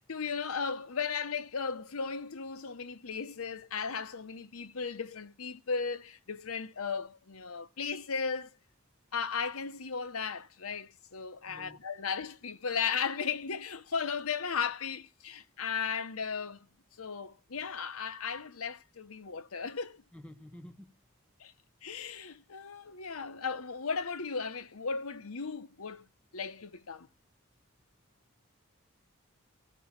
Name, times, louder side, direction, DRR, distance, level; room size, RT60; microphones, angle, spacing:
voice 1, 0.1-8.5 9.1-16.7 17.0-20.0 21.4-21.5 21.8-26.1 26.3-27.1, left 6 dB, 80° left, 0.9 m, -36 dB
voice 2, 11.4-11.8 20.1-21.0, left 1 dB, 5° left, 1.0 m, -50 dB
14.5 x 5.4 x 7.2 m
head